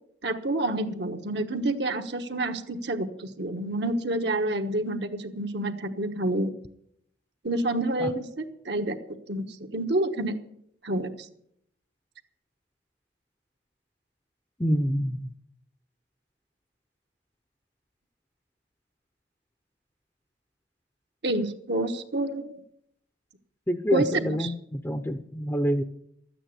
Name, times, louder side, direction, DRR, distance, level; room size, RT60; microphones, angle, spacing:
voice 1, 0.2-6.5 7.4-9.0 9.3-9.4 9.7-10.4 10.8-11.3 21.2-22.6 23.9-24.5, right 1 dB, 65° right, 5 dB, 1.2 m, -28 dB
voice 2, 14.6-15.3 23.7-25.8, equal, 15° left, 7 dB, 0.6 m, -27 dB
13.0 x 9.2 x 8.2 m, 0.72 s
head